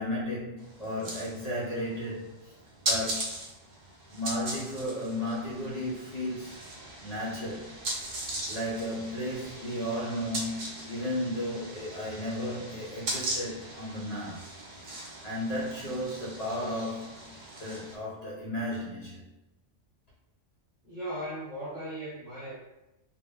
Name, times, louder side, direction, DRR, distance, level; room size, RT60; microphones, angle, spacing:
voice 1, 0.0-2.5 2.9-3.4 4.1-6.6 7.0-7.8 8.5-14.5 15.2-19.3, left 1 dB, 45° left, -5 dB, 0.6 m, -34 dB
sound 1, 0.6-18.0, right 1 dB, 50° right, 0.6 m, -39 dB
voice 2, 20.8-22.5, right 1 dB, 70° right, -8 dB, 1.1 m, -37 dB
2.1 x 2.0 x 3.5 m, 0.96 s
omnidirectional pair, 1.2 m